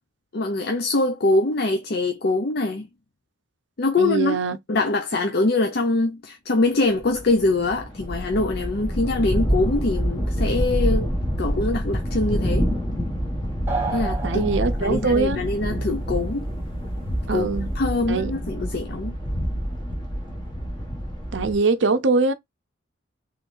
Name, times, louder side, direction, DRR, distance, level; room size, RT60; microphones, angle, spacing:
voice 1, 0.3-2.9 3.8-4.4 4.7-11.1 11.4-12.7 13.9-14.5 14.8-16.5 17.3-17.5 17.7-19.2, left 2 dB, 50° left, 0.6 m, -23 dB
voice 2, 4.0-4.6 14.2-15.4 17.3-17.7 18.1-18.3 21.3-22.3, right 3 dB, 65° right, 0.6 m, -22 dB
sound 1, 7.0-21.6, equal, 25° left, 1.2 m, -27 dB
sound 2, 13.7-15.2, right 3 dB, 10° right, 1.2 m, -30 dB
3.8 x 3.2 x 2.6 m
head